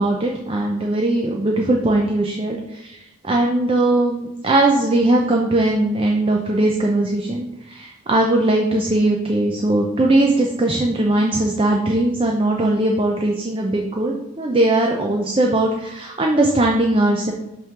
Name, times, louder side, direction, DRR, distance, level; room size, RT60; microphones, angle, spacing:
voice 1, 0.0-3.0 3.2-17.3, right 2 dB, 30° right, 0 dB, 0.6 m, -19 dB
5.6 x 3.7 x 5.9 m, 0.92 s
head